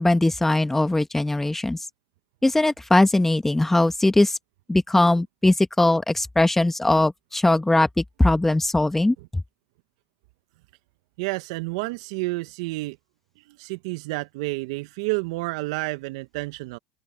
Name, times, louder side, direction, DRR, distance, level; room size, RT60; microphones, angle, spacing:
voice 1, 0.0-1.8 2.4-4.3 4.7-9.1, left 2 dB, 10° left, 1.9 m, -20 dB
voice 2, 11.2-13.0 13.5-16.8, right 24 dB, 70° right, 1.2 m, -30 dB
open air
hypercardioid pair, 75°, 3 cm